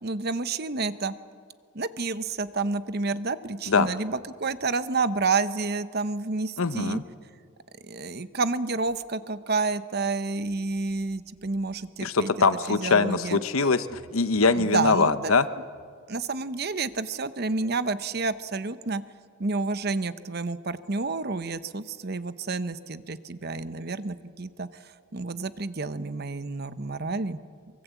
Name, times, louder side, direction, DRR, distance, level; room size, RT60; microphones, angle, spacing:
voice 1, 0.0-1.1 1.7-7.0 7.8-12.3 12.7-13.4 14.5-15.3 16.1-19.0 19.4-27.4, right 3 dB, 50° right, 12 dB, 0.9 m, -29 dB
voice 2, 6.6-7.0 12.0-15.5, left 4 dB, 80° left, 12 dB, 1.0 m, -23 dB
24.0 x 23.5 x 8.3 m, 2.1 s
head